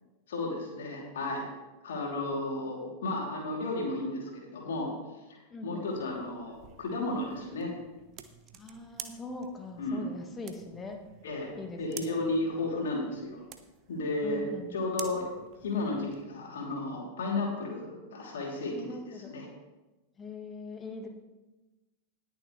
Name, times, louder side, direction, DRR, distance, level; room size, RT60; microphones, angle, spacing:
voice 1, 0.3-1.5 1.8-4.9 5.3-7.7 9.8-10.1 11.2-11.5 11.8-13.4 13.9-15.3 15.6-19.0 19.2-19.5, left 2 dB, 60° left, -1 dB, 3.1 m, -33 dB
voice 2, 5.5-5.9 8.5-11.1 11.6-12.2 14.2-14.7 18.7-19.3 20.2-21.1, left 3 dB, 20° left, 3 dB, 1.6 m, -42 dB
sound 1, 5.9-16.2, right 9 dB, 35° right, 0.9 m, -50 dB
19.5 x 6.9 x 3.2 m, 1.1 s
figure-of-eight pair, 90°, 0 cm